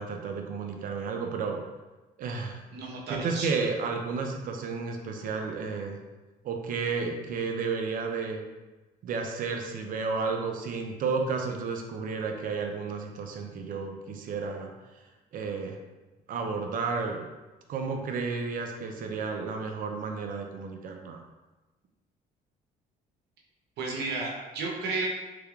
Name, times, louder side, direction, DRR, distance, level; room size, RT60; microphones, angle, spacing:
voice 1, 0.0-1.6 2.2-2.6 3.1-6.0 6.4-8.4 9.0-14.7 15.3-15.8 16.3-17.3 17.7-21.2, right 4 dB, 55° right, 3 dB, 0.4 m, -32 dB
voice 2, 2.7-3.5 23.8-25.1, right 3 dB, 75° right, -1 dB, 0.8 m, -32 dB
3.3 x 3.3 x 2.3 m, 1.1 s
cardioid pair, 110°, 17 cm